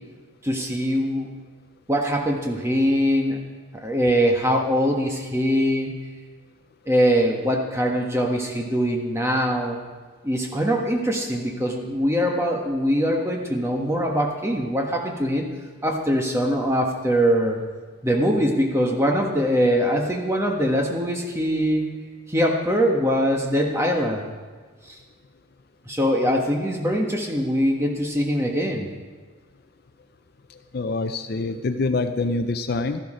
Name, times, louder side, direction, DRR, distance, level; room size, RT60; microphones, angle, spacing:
voice 1, 0.4-1.3 1.9-3.4 3.7-5.9 6.9-9.8 10.2-15.5 15.8-17.6 18.0-21.8 22.3-24.2 24.9-25.0 25.9-28.9, equal, 15° right, 0 dB, 1.3 m, -22 dB
voice 2, 30.7-33.0, left 3 dB, 45° left, 9 dB, 0.4 m, -25 dB
13.0 x 11.5 x 5.0 m, 1.4 s
head